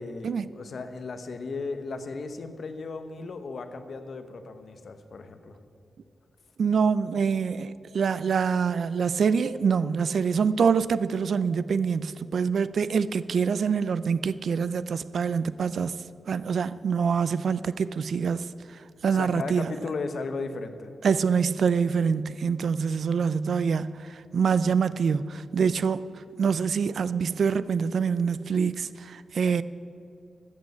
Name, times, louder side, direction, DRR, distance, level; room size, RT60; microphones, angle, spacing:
voice 1, 0.0-5.6 19.1-20.9, left 3 dB, 60° left, 0.9 m, -36 dB
voice 2, 6.6-15.9 16.3-18.5 19.0-19.7 21.0-26.0 26.4-29.6, right 6 dB, 70° right, 0.4 m, -25 dB
13.5 x 6.4 x 8.4 m
wide cardioid pair, 140°, 0 cm